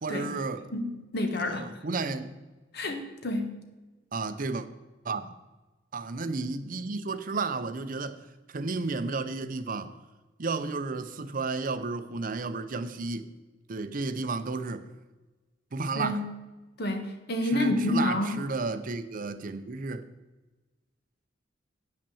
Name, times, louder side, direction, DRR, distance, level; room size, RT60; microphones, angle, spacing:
voice 1, 0.0-0.6 1.4-2.3 4.1-4.7 5.0-5.3 5.9-9.9 10.4-13.3 13.7-14.9 15.7-16.2 17.4-20.1, right 3 dB, 50° right, 0.6 m, -32 dB
voice 2, 0.7-1.7 2.7-3.6 15.9-16.3 16.8-18.4, left 1 dB, 60° left, 1.3 m, -29 dB
8.8 x 5.8 x 7.0 m
head